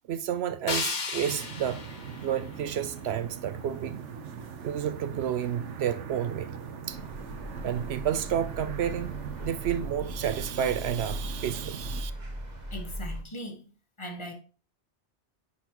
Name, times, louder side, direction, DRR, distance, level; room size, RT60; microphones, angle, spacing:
voice 1, 0.1-1.8 2.2-4.0 4.6-6.5 6.9-7.0 7.6-9.1 9.4-12.1, right 9 dB, 70° right, 0.8 m, -30 dB
sound 1, 0.7-3.6, left 4 dB, 45° left, 1.0 m, -36 dB
sound 2, 1.2-12.0, right 7 dB, 85° right, 1.1 m, -41 dB
sound 3, 6.9-13.2, equal, 40° right, 1.1 m, -39 dB
voice 2, 12.7-13.6 14.0-14.3, equal, 25° left, 1.2 m, -39 dB
9.7 x 4.1 x 3.0 m
omnidirectional pair, 1.2 m